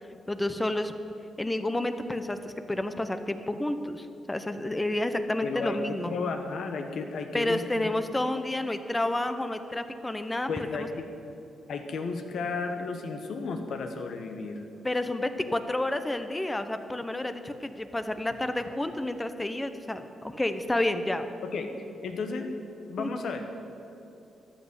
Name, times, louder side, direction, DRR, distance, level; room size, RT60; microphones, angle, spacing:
voice 1, 0.3-0.9 1.4-6.2 7.3-10.5 10.8-10.9 14.8-21.2 23.0-23.1, left 1 dB, 15° left, 9 dB, 0.8 m, -30 dB
voice 2, 5.4-7.9 10.5-11.1 11.7-14.6 21.4-21.7 22.0-22.5 22.9-23.4, left 4 dB, 70° left, 6 dB, 1.3 m, -33 dB
13.0 x 6.1 x 9.8 m, 2.9 s
cardioid pair, 90°, 0 cm